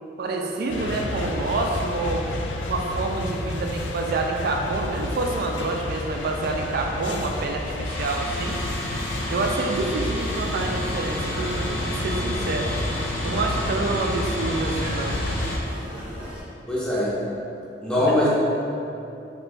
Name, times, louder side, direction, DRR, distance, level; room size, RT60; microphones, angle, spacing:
voice 1, 0.2-2.3 2.6-8.6 9.3-12.7 13.2-15.2, right 3 dB, 60° right, 2 dB, 0.3 m, -27 dB
sound 1, 0.7-15.6, left 2 dB, 80° left, 0.3 m, -31 dB
sound 2, 7.8-15.6, equal, 65° left, 0.8 m, -32 dB
sound 3, 10.6-16.4, equal, 30° right, 0.9 m, -37 dB
voice 2, 16.7-17.1 17.8-18.3, left 1 dB, 5° left, -7 dB, 0.6 m, -21 dB
3.0 x 2.5 x 3.3 m, 2.7 s
head